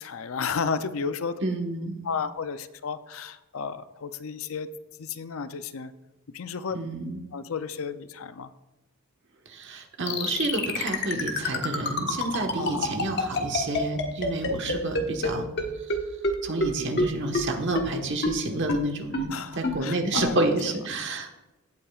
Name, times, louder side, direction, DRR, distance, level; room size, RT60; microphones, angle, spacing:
voice 1, 0.0-1.4 2.0-4.7 5.0-5.9 6.3-6.8 7.3-8.5 12.6-13.3 14.6-14.8 19.3-20.5, left 5 dB, 65° left, 12 dB, 0.5 m, -33 dB
voice 2, 1.4-2.0 6.7-7.2 9.5-15.5 15.9-16.0 16.4-21.3, right 2 dB, 55° right, 3 dB, 1.3 m, -29 dB
sound 1, 10.1-15.3 15.6-15.7 15.9-16.0 16.2-16.3 16.6-16.7 17.0-17.1 17.3-17.4 17.7-17.8 18.2-18.3 18.7-18.8 19.1-19.2 19.6-19.7 20.1-20.3, left 3 dB, 50° left, 1.4 m, -25 dB
16.0 x 8.6 x 2.4 m, 1.0 s
head